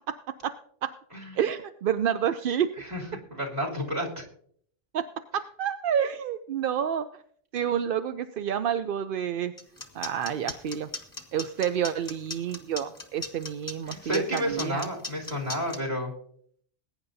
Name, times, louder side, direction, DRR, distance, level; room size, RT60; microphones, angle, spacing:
voice 1, 0.1-0.5 0.8-0.9 1.4-2.7 4.9-5.1 5.3-7.2 7.5-9.5 9.9-10.9 11.3-14.9, right 9 dB, 60° right, 10 dB, 0.6 m, -29 dB
voice 2, 2.8-4.2 13.9-16.1, equal, 35° right, -2 dB, 3.3 m, -31 dB
sound 1, 9.6-15.8, left 2 dB, 15° left, 1.5 m, -37 dB
21.0 x 9.7 x 2.7 m, 0.62 s
omnidirectional pair, 1.2 m